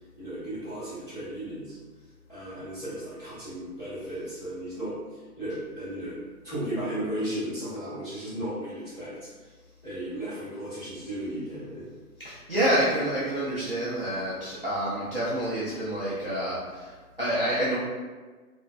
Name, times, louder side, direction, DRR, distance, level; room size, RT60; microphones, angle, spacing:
voice 1, 0.1-1.8 2.3-6.2 6.4-9.3 9.8-11.9, right 1 dB, 15° left, -17 dB, 0.9 m, -35 dB
voice 2, 12.2-16.9 17.2-17.8, right 1 dB, 40° right, -11 dB, 0.4 m, -28 dB
2.4 x 2.2 x 2.2 m, 1.4 s
hypercardioid pair, 175°, 46 cm